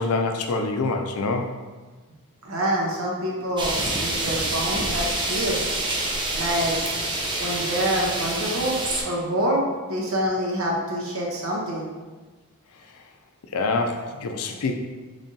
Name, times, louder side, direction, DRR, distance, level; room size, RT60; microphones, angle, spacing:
voice 1, 0.0-1.6 13.5-14.7, left 3 dB, 70° left, 4 dB, 0.4 m, -25 dB
voice 2, 2.4-5.7 6.3-6.7 7.4-11.9, equal, 65° right, -3 dB, 0.9 m, -26 dB
sound 1, 3.6-9.0, right 2 dB, 20° right, 0.4 m, -27 dB
3.7 x 3.3 x 2.7 m, 1.3 s
head